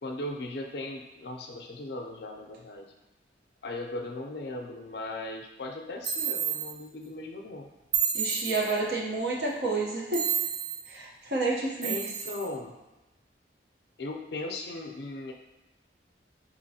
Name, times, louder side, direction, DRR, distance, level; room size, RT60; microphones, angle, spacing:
voice 1, 0.0-2.9 3.6-7.7 11.8-12.8 14.0-15.3, left 2 dB, 70° left, 3 dB, 0.5 m, -38 dB
sound 1, 6.0-6.7 7.9-8.8 10.1-10.8 11.8-12.5, right 7 dB, 25° right, 0.3 m, -30 dB
voice 2, 8.1-10.2 10.9-12.0, right 3 dB, 65° right, -2 dB, 0.8 m, -29 dB
5.0 x 2.9 x 2.7 m, 1.0 s
head